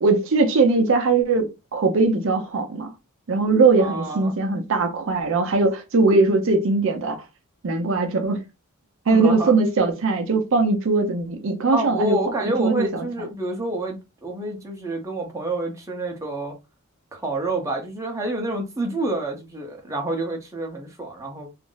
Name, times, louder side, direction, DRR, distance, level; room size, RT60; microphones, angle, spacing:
voice 1, 0.0-2.9 3.3-7.2 7.6-8.4 9.1-13.0, right 3 dB, 60° right, 0.5 m, -20 dB
voice 2, 3.8-4.3 9.1-9.6 11.7-16.6 17.1-21.5, right 1 dB, 15° right, 0.7 m, -28 dB
2.5 x 2.0 x 3.8 m
head